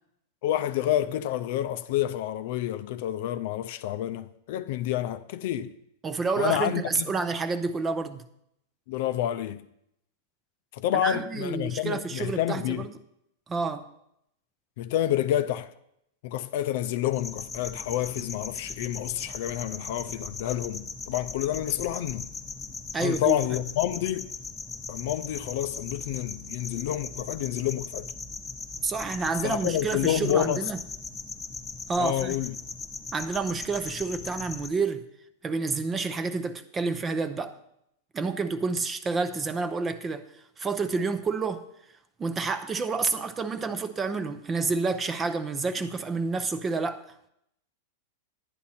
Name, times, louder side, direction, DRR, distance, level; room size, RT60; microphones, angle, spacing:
voice 1, 0.4-5.7 6.4-7.1 8.9-9.6 10.7-12.9 14.8-15.7 16.2-22.3 23.0-24.3 24.9-28.1 29.4-30.6 32.0-32.5, left 12 dB, 55° left, 0.5 m, -29 dB
voice 2, 6.0-8.2 11.0-12.9 13.5-13.9 22.9-23.6 28.8-30.8 31.9-32.4 33.1-35.1 35.4-37.6 38.1-40.3 40.6-41.6 42.2-47.0, right 4 dB, 15° right, 0.6 m, -29 dB
sound 1, 17.1-34.7, left 4 dB, 10° left, 1.0 m, -39 dB
10.5 x 9.9 x 4.3 m
supercardioid pair, 150°, 0 cm